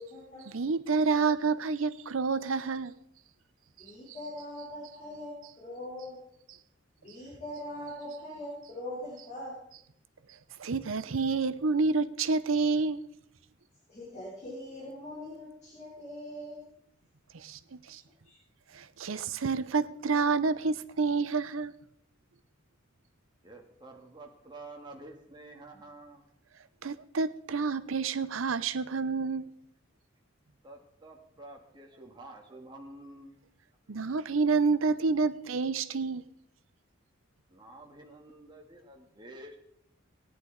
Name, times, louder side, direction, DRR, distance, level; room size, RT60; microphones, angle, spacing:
voice 1, 0.0-0.5 3.8-6.2 7.0-9.6 13.9-16.7 17.9-18.0 18.2-18.4, left 1 dB, 35° left, 3.8 m, -42 dB
voice 2, 0.5-2.9 10.6-13.0 17.3-17.6 17.9-18.0 18.7-21.7 26.8-29.5 33.9-36.2, right 4 dB, 85° right, 0.7 m, -28 dB
voice 3, 23.4-26.2 30.6-33.4 34.0-34.1 37.5-39.6, right 2 dB, 25° right, 1.7 m, -49 dB
17.5 x 10.0 x 3.9 m
head